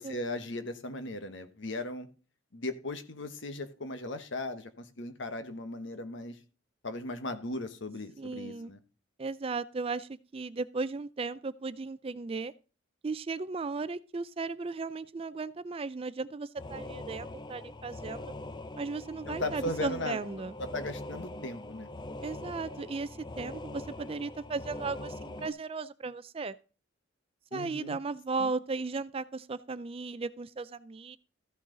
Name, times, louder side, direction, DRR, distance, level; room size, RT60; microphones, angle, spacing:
voice 1, 0.0-2.1 2.5-6.4 6.8-8.8 19.3-20.2 20.6-21.9 27.5-28.0 28.4-28.5, left 2 dB, 65° left, 1.2 m, -37 dB
voice 2, 8.2-8.7 9.2-12.5 13.0-18.3 18.8-20.5 22.2-26.6 27.5-31.2, right 4 dB, 30° right, 0.4 m, -36 dB
sound 1, 16.6-25.5, left 1 dB, 20° left, 0.5 m, -42 dB
14.0 x 6.4 x 3.9 m
head